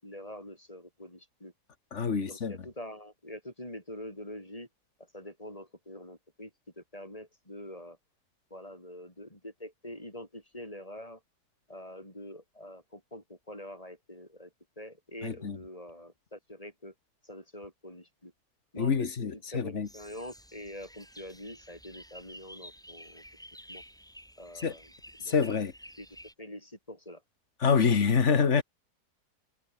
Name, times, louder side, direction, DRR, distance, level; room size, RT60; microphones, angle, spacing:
voice 1, 0.0-1.5 2.1-4.7 5.0-6.5 6.8-8.0 8.5-11.2 11.7-14.5 14.8-16.9 17.2-18.3 18.7-23.2 23.7-23.8 24.4-24.9 25.2-25.6 26.0-26.1 26.4-27.2, left 1 dB, 20° left, 7.1 m, -45 dB
voice 2, 1.9-2.5 15.2-15.6 18.8-19.9 24.6-24.7 25.3-25.7 27.6-28.6, left 6 dB, 50° left, 1.8 m, -26 dB
sound 1, 19.8-26.3, equal, ahead, 5.4 m, -51 dB
omnidirectional pair, 1.7 m